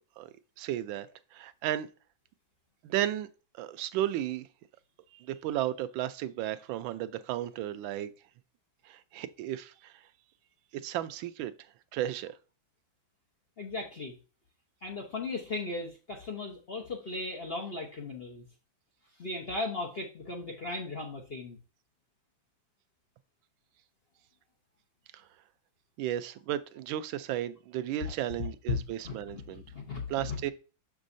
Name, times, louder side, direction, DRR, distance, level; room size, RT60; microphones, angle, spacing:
voice 1, 0.2-1.1 1.3-1.9 2.8-3.3 3.6-4.5 5.1-8.1 8.8-10.0 10.8-11.5 11.9-12.3 25.1-25.3 26.0-29.6 30.1-30.5, right 12 dB, 85° right, 1.3 m, -34 dB
voice 2, 13.6-14.2 14.8-18.5 19.2-21.6 28.0-28.1 28.7-28.8 29.0-30.4, left 3 dB, 45° left, 0.8 m, -36 dB
6.3 x 6.1 x 2.6 m
omnidirectional pair, 2.1 m